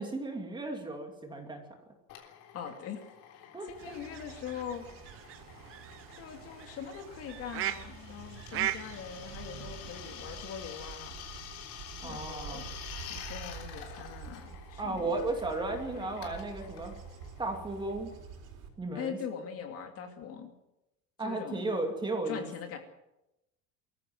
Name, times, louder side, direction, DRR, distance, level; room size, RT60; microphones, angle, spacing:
voice 1, 0.0-1.6 3.5-3.7 12.0-12.7 14.8-16.9 17.4-18.1 18.8-19.2 21.2-22.5, right 2 dB, 15° right, 3 dB, 2.5 m, -34 dB
Drill, 2.1-18.4, left 9 dB, 65° left, 3.6 m, -49 dB
voice 2, 2.5-3.0 3.3-4.8 6.1-11.2 12.0-12.7 12.9-15.2 15.9-16.2 18.9-20.5 21.2-21.7 22.2-22.8, left 8 dB, 40° left, 5 dB, 2.5 m, -42 dB
Bird / Insect / Wind, 3.7-18.7, right 6 dB, 60° right, 5.0 m, -48 dB
sound 1, 3.8-10.4, right 13 dB, 40° right, 0.9 m, -40 dB
23.5 x 14.5 x 7.7 m, 0.92 s
cardioid pair, 175°, 35 cm